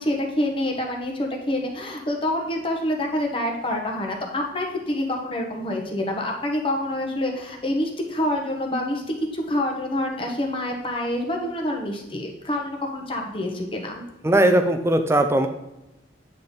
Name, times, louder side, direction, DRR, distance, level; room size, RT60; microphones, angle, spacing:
voice 1, 0.0-13.9, left 1 dB, 30° left, 1 dB, 1.0 m, -27 dB
voice 2, 14.2-15.5, right 1 dB, 15° right, 7 dB, 0.5 m, -19 dB
8.7 x 4.0 x 3.7 m, 0.93 s
head